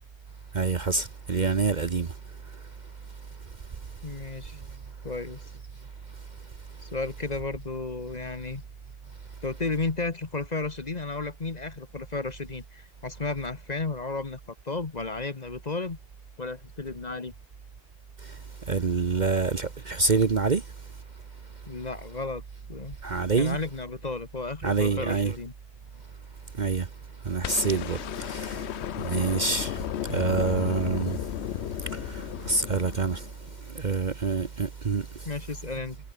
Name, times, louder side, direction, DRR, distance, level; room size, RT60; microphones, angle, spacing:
voice 1, 0.5-2.1 18.7-20.6 23.0-23.6 24.6-25.4 26.6-26.9 27.3-28.6 29.0-29.8 30.1-31.2 32.1-32.2 32.5-33.2 33.7-35.0, right 4 dB, 40° right, 1.0 m, -26 dB
voice 2, 4.0-4.6 5.0-5.4 6.8-8.6 9.4-16.0 16.4-17.3 21.7-22.4 22.7-23.0 23.4-25.5 35.2-36.0, left 3 dB, 35° left, 1.4 m, -33 dB
sound 1, 27.4-33.6 35.1-35.2, left 12 dB, 65° left, 0.9 m, -34 dB
omnidirectional pair, 1.3 m